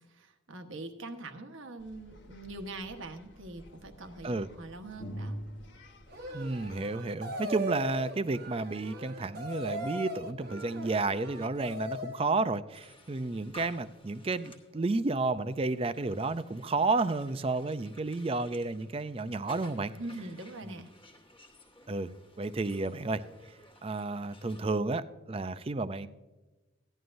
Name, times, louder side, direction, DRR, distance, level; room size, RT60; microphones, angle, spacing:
voice 1, 0.1-5.4 19.9-20.9, right 2 dB, 80° right, 5 dB, 1.2 m, -43 dB
sound 1, 1.8-6.8, equal, 65° left, 1.1 m, -46 dB
sound 2, 6.1-12.3, equal, 50° right, 0.9 m, -39 dB
voice 2, 6.3-19.9 20.6-20.8 21.9-22.1 22.4-23.2 23.8-26.1, right 3 dB, 30° right, 13 dB, 0.4 m, -31 dB
sound 3, 12.7-24.6, left 1 dB, 25° left, 1.3 m, -56 dB
15.5 x 11.0 x 2.6 m, 1.2 s
head